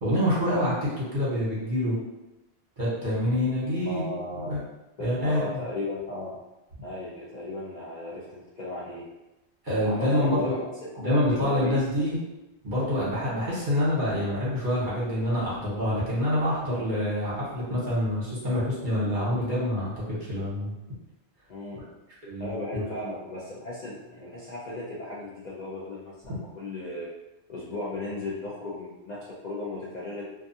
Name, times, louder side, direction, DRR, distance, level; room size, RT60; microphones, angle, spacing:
voice 1, 0.0-2.0 2.8-4.1 4.4-4.6 5.0-5.6 9.6-10.5 11.0-12.2 12.6-20.7 22.2-22.8, left 1 dB, 45° right, -9 dB, 1.1 m, -26 dB
voice 2, 3.8-4.6 5.0-6.4 6.8-9.0 9.8-10.7 10.9-11.8 21.5-21.9 22.4-27.1 27.5-30.3, left 2 dB, 55° left, -7 dB, 0.5 m, -35 dB
2.4 x 2.3 x 2.6 m, 0.98 s
omnidirectional pair, 1.1 m